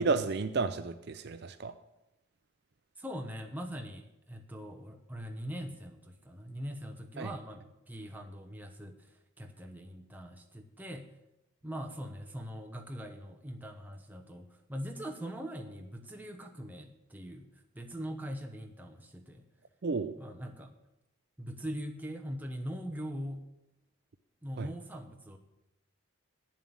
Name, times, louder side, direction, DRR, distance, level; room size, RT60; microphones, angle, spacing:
voice 1, 0.0-1.7 7.2-7.3 19.8-20.1 24.6-24.7, right 4 dB, 50° right, 10 dB, 0.4 m, -31 dB
voice 2, 3.0-11.2 11.6-19.4 20.2-20.8 21.4-23.4 24.4-25.4, equal, 10° right, 3 dB, 0.9 m, -42 dB
8.6 x 7.4 x 8.9 m, 0.91 s
head